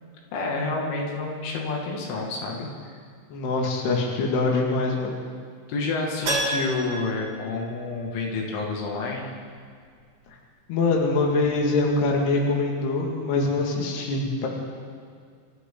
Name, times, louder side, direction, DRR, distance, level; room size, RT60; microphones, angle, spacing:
voice 1, 0.3-2.7 5.7-9.3, left 3 dB, 90° left, -1 dB, 4.7 m, -29 dB
voice 2, 3.3-5.2 10.7-14.5, left 3 dB, 65° left, -1 dB, 3.9 m, -24 dB
Keyboard (musical), 6.2-8.3 8.6-8.7 11.4-11.5 11.7-11.8, right 1 dB, 60° right, 6.3 m, -30 dB
27.0 x 14.0 x 3.9 m, 2.1 s
omnidirectional pair, 5.4 m